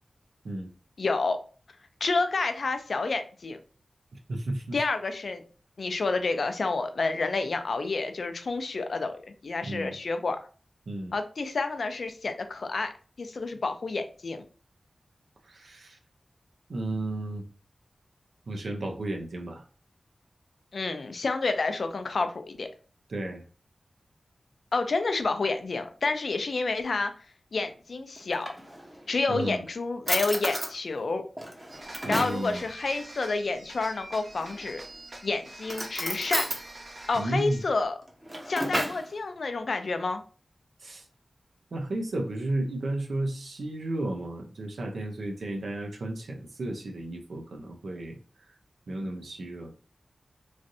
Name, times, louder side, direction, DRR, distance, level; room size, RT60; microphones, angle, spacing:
voice 1, 1.0-1.4 2.0-3.6 4.7-5.4 5.8-10.4 11.1-12.9 13.2-14.4 20.7-22.7 24.7-27.1 27.5-28.5 29.1-31.2 32.1-34.8 35.2-36.5 37.1-38.0 38.5-40.2, left 3 dB, 70° left, 8 dB, 0.4 m, -29 dB
voice 2, 4.3-4.8 9.6-10.0 10.9-11.1 15.4-16.0 16.7-17.5 18.5-19.6 23.1-23.4 29.3-29.6 32.0-32.7 37.1-37.6 40.8-41.1 41.7-48.2 48.5-48.6 48.9-49.7, right 1 dB, 85° right, 3 dB, 0.6 m, -33 dB
Drawer open or close, 28.2-29.1 29.7-29.8 30.1-30.7 31.4-32.5 34.3-34.9 35.6-36.6 38.0-39.1, right 1 dB, 20° right, 0.7 m, -32 dB
sound 1, 31.7-37.8, right 1 dB, 45° right, 0.9 m, -45 dB
3.1 x 2.6 x 2.6 m, 0.38 s
wide cardioid pair, 95°, 0 cm